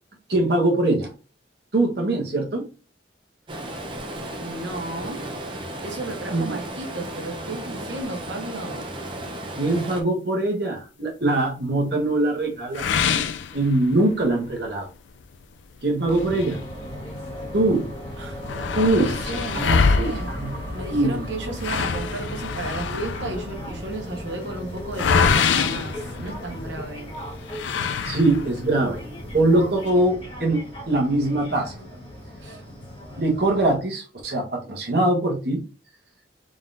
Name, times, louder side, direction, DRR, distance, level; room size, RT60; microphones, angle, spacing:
voice 1, 0.3-1.1 1.7-2.6 6.3-6.5 9.6-12.9 13.5-14.9 15.8-16.6 17.5-17.9 18.7-20.6 20.9-21.2 28.0-29.0 29.3-31.7 33.2-35.6, right 2 dB, 55° right, 0 dB, 1.2 m, -22 dB
Stream, 3.5-10.0, right 1 dB, 25° right, 0.6 m, -34 dB
voice 2, 4.4-5.3 5.8-8.9 18.2-18.4 18.8-20.3 20.7-27.1 28.0-28.2 32.4-32.6, right 2 dB, 75° right, 2 dB, 1.2 m, -34 dB
sound 1, 12.7-14.2 14.7-14.8 15.2-15.3 16.1-17.4 17.8-17.9 18.1-26.8 27.5-28.6, left 5 dB, 75° left, 0.4 m, -25 dB
sound 2, 16.0-33.8, equal, 30° left, 1.5 m, -36 dB
3.8 x 3.7 x 2.6 m, 0.35 s
head